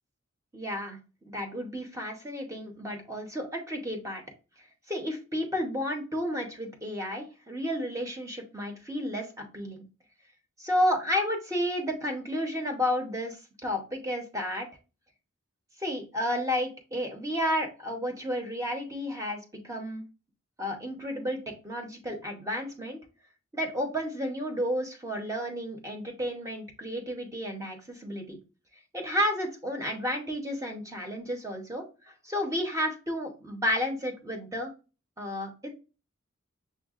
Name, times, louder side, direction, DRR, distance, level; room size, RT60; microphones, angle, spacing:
voice 1, 0.5-4.2 4.9-9.8 10.6-14.7 15.8-20.0 20.6-21.4 21.6-23.0 23.5-28.4 28.9-34.7 35.2-35.7, equal, 15° right, 3 dB, 0.8 m, -32 dB
6.2 x 2.2 x 2.4 m, 0.31 s
head